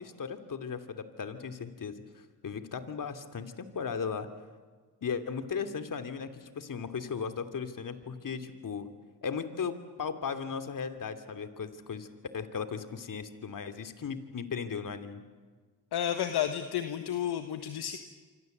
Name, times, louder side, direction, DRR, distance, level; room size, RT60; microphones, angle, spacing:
voice 1, 0.0-4.3 5.0-8.9 9.2-12.1 12.3-15.2, left 6 dB, 50° left, 9 dB, 2.9 m, -37 dB
voice 2, 15.9-18.0, left 10 dB, 65° left, 8 dB, 1.5 m, -31 dB
26.5 x 26.0 x 8.0 m, 1.4 s
supercardioid pair, 55°, 41 cm